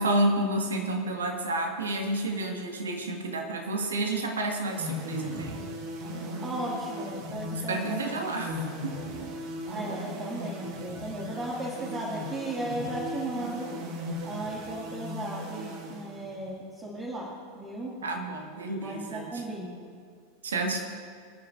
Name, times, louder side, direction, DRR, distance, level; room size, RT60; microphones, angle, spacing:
voice 1, 0.0-5.7 7.7-9.0 18.0-19.4 20.4-20.8, right 2 dB, 70° right, 2 dB, 1.8 m, -30 dB
sound 1, 4.7-16.6, left 1 dB, 50° right, 2.0 m, -37 dB
voice 2, 6.4-8.1 9.6-13.7 14.2-18.0 18.8-19.9, right 1 dB, 20° right, -4 dB, 2.3 m, -36 dB
27.5 x 9.8 x 2.6 m, 2.1 s
figure-of-eight pair, 85°, 0 cm